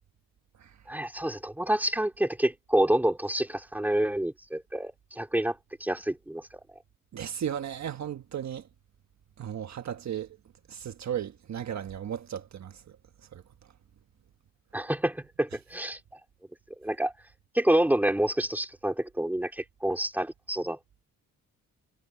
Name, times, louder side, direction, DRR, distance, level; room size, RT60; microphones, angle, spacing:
voice 1, 0.9-6.4 14.7-16.0 16.8-17.1 17.5-20.8, right 1 dB, 5° right, 2.5 m, -28 dB
voice 2, 7.1-8.6 9.4-10.3 10.7-12.8 13.3-13.4, right 9 dB, 55° right, 1.4 m, -35 dB
cardioid pair, 115°, 33 cm